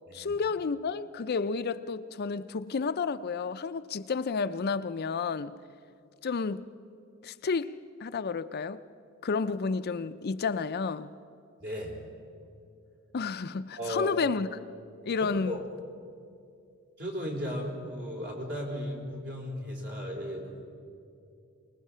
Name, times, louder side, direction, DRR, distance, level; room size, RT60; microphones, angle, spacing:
voice 1, 0.1-5.5 6.2-6.6 7.2-8.8 9.2-11.1 13.1-14.5 15.0-15.6, left 4 dB, 50° left, 0.5 m, -31 dB
voice 2, 11.6-12.0 13.7-14.2 15.2-15.8 17.0-20.6, equal, 55° right, 4.0 m, -36 dB
25.5 x 20.0 x 5.6 m
head